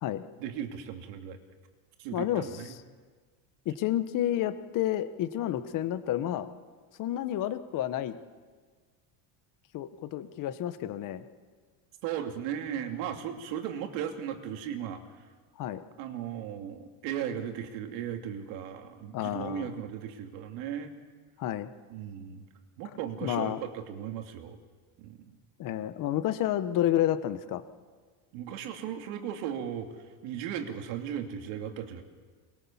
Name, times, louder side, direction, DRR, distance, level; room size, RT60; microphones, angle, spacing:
voice 1, 0.4-1.4 2.0-2.7 12.0-15.0 16.0-21.0 21.9-22.4 22.8-24.6 25.0-25.4 28.3-30.0 30.2-32.0, right 9 dB, 80° right, 5 dB, 2.9 m, -36 dB
voice 2, 2.1-2.5 3.6-6.5 7.0-8.2 9.7-11.2 15.6-15.8 19.1-19.7 21.4-21.7 23.2-23.6 25.6-27.6, left 12 dB, 45° left, 11 dB, 1.2 m, -30 dB
24.5 x 21.5 x 7.3 m, 1.5 s
cardioid pair, 150°, 44 cm